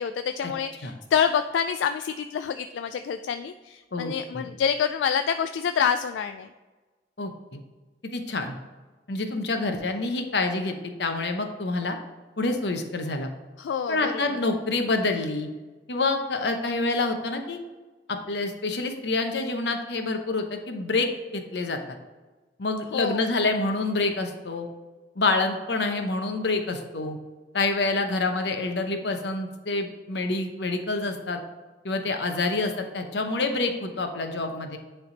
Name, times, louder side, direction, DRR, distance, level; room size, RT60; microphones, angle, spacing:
voice 1, 0.0-6.5 13.6-14.4 22.9-23.3, left 7 dB, 85° left, 8 dB, 0.3 m, -27 dB
voice 2, 3.9-4.5 7.2-7.6 8.0-8.5 9.1-12.0 12.4-13.3 13.9-15.5 15.9-17.6 18.1-22.0 22.6-24.7 25.2-27.2 27.5-31.4 31.8-34.8, left 3 dB, 70° left, 5 dB, 0.8 m, -27 dB
9.8 x 3.4 x 4.0 m, 1.3 s
head